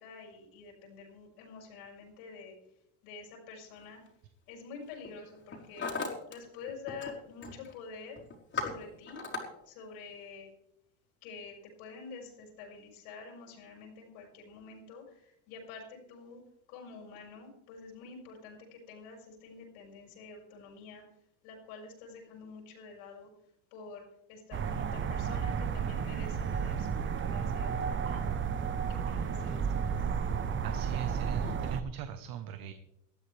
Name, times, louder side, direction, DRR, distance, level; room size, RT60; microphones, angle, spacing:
voice 1, 0.0-2.5 3.0-4.0 4.5-5.9 6.3-8.2 8.5-9.2 9.7-10.5 11.2-16.4 16.7-21.0 21.4-23.3 23.7-28.5 28.9-29.9, left 4 dB, 90° left, -1 dB, 5.8 m, -48 dB
Hammer, 3.8-4.1 4.8-5.1 5.4-6.4 6.6-7.1 7.4-7.7 8.2-9.4, left 4 dB, 25° left, 4.2 m, -37 dB
sound 1, 24.5-31.8, right 6 dB, 25° right, 0.9 m, -32 dB
voice 2, 30.6-32.7, right 9 dB, 55° right, 9 dB, 1.1 m, -40 dB
19.5 x 13.0 x 3.4 m, 0.80 s
cardioid pair, 130°, 43 cm